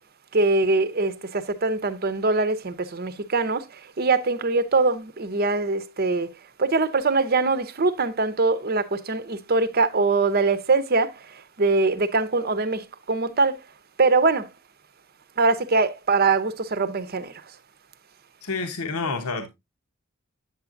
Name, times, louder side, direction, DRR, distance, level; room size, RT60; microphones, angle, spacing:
voice 1, 0.3-6.3 6.6-13.6 14.0-14.5 15.4-17.3, right 3 dB, 45° right, 0.7 m, -23 dB
voice 2, 18.4-19.5, left 4 dB, 80° left, 1.0 m, -28 dB
8.7 x 7.0 x 2.5 m
head